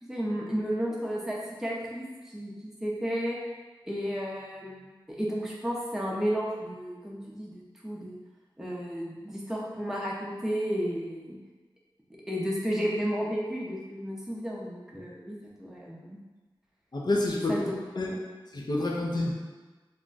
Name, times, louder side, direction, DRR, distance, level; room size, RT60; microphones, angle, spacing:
voice 1, 0.0-3.4 3.9-8.2 8.6-11.4 12.3-16.2 17.5-17.7, equal, 5° right, -4 dB, 0.6 m, -33 dB
voice 2, 16.9-17.6 17.9-18.1 18.5-19.3, left 2 dB, 50° left, -2 dB, 0.5 m, -28 dB
2.4 x 2.2 x 3.8 m, 1.3 s
wide cardioid pair, 70°, 9 cm